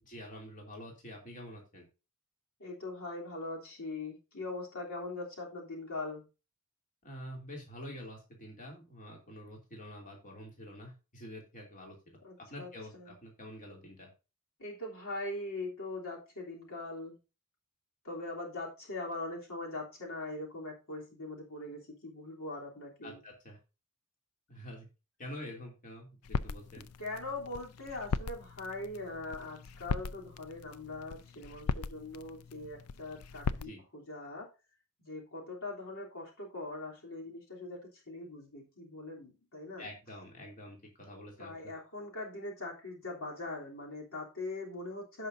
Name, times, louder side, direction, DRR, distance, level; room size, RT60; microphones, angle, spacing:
voice 1, 0.0-1.8 7.0-11.9 12.4-14.1 23.0-23.6 24.5-24.9 25.2-26.9 33.6-33.8 39.8-41.7, left 1 dB, 35° left, 0 dB, 2.9 m, -47 dB
voice 2, 2.6-6.3 12.2-13.1 14.6-17.2 18.0-23.2 27.0-34.5 35.0-39.9 41.4-45.3, left 2 dB, 65° left, -2 dB, 3.2 m, -41 dB
sound 1, 26.2-33.6, left 5 dB, 80° left, 0.5 m, -39 dB
16.0 x 5.8 x 2.6 m, 0.30 s
head